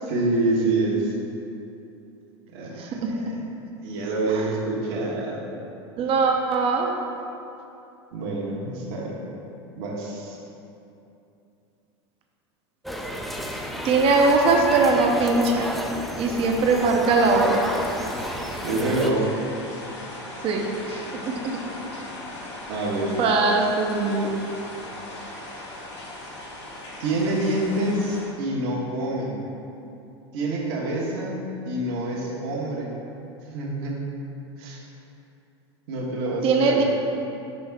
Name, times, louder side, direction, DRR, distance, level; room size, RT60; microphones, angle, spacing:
voice 1, 0.0-1.1 2.5-3.4 3.8-5.5 8.1-9.1 9.7-10.4 18.6-19.3 22.7-23.2 27.0-29.3 30.3-32.9 33.5-34.0 34.6-34.8 35.9-36.8, right 2 dB, 60° right, -3 dB, 1.3 m, -26 dB
voice 2, 2.8-3.4 4.3-4.4 6.0-7.0 13.8-15.7 16.2-17.7 20.4-21.6 23.2-24.3 36.4-36.8, right 3 dB, 40° right, 1 dB, 0.8 m, -21 dB
sound 1, 12.8-19.1, equal, ahead, 0.5 m, -32 dB
sound 2, 17.3-28.2, left 1 dB, 75° left, 1.5 m, -38 dB
5.5 x 5.3 x 3.5 m, 2.7 s
hypercardioid pair, 90°, 14 cm